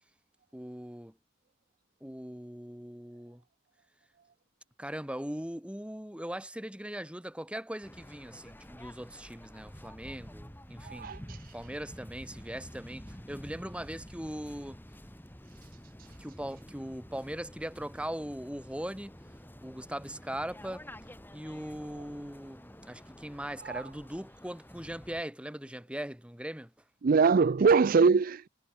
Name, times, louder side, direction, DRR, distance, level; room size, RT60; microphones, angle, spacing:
voice 1, 0.5-1.1 2.0-3.4 4.8-11.1 11.5-14.8 16.2-19.1 19.6-20.9 21.3-26.7, equal, 5° right, 2.3 m, -40 dB
Waves surf, 7.8-25.2, equal, 10° left, 5.3 m, -49 dB
voice 2, 10.9-11.4 23.6-23.8 27.0-28.5, right 5 dB, 50° right, 0.4 m, -23 dB
head